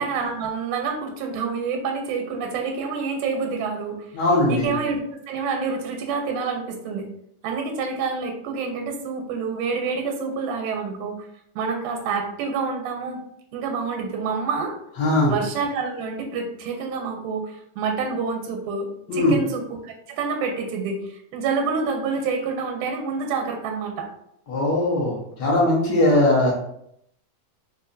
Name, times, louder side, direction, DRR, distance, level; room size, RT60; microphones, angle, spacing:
voice 1, 0.0-4.1 4.5-7.1 7.4-11.2 11.6-13.2 13.5-14.8 15.3-21.0 21.3-24.1, right 5 dB, 85° right, 3 dB, 2.0 m, -27 dB
voice 2, 4.1-4.7 15.0-15.3 19.1-19.3 24.5-25.1 25.4-26.5, left 1 dB, 70° left, -4 dB, 1.0 m, -19 dB
4.3 x 2.7 x 2.5 m, 0.74 s
omnidirectional pair, 3.4 m